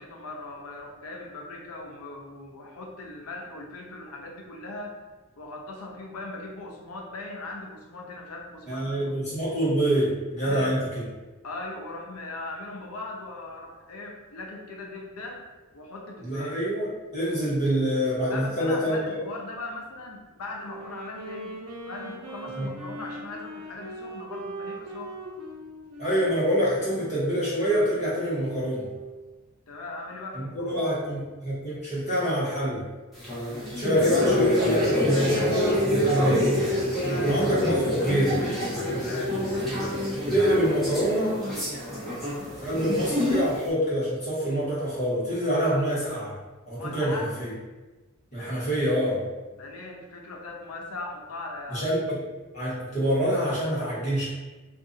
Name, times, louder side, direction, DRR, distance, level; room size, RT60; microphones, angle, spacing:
voice 1, 0.0-5.0 5.4-9.2 10.4-10.9 11.4-15.4 15.7-16.6 18.3-25.2 29.7-30.9 37.1-37.3 39.0-39.5 46.8-47.3 49.6-51.9, left 2 dB, 70° left, 0 dB, 0.6 m, -39 dB
voice 2, 8.7-10.9 16.2-19.2 22.6-22.7 26.0-28.9 30.3-32.8 33.7-36.5 37.1-38.4 39.8-39.9 40.3-41.4 42.6-46.3 46.7-47.5 48.3-49.2 51.7-52.2 52.5-54.3, equal, 30° left, -9 dB, 1.3 m, -26 dB
Wind instrument woodwind instrument, 20.5-29.2, right 1 dB, 85° right, 0.8 m, -41 dB
sound 1, 33.1-43.6, left 1 dB, ahead, 1.0 m, -26 dB
2.6 x 2.6 x 3.8 m, 1.2 s
head